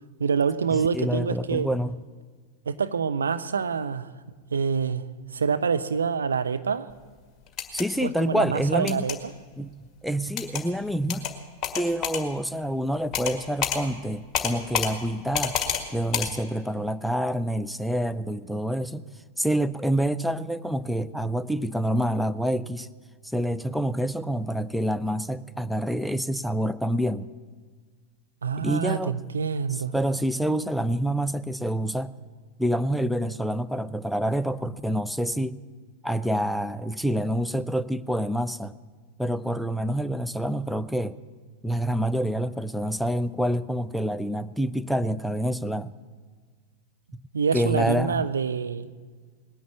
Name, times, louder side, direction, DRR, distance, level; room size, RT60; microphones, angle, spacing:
voice 1, 0.2-1.7 2.7-4.1 4.5-5.1 5.3-6.9 8.0-9.3 28.4-29.9 47.3-48.9, right 6 dB, 70° right, 11 dB, 0.6 m, -26 dB
voice 2, 0.7-2.0 7.7-9.0 9.6-9.7 10.0-11.3 11.8-15.6 15.9-19.0 19.4-22.9 23.3-27.3 28.6-29.2 29.7-32.1 32.6-35.6 36.0-38.7 39.2-41.2 41.6-45.9 47.5-48.3, equal, ahead, 12 dB, 0.5 m, -27 dB
sound 1, 7.5-7.9 8.9-9.2 10.4-10.6 11.1-11.3 11.6-12.2 13.1-13.4 13.6-13.8 14.3-14.9 15.3-15.8 16.1-16.3, left 8 dB, 25° left, 1.8 m, -27 dB
19.0 x 10.5 x 7.1 m, 1.5 s
figure-of-eight pair, 90°, 0 cm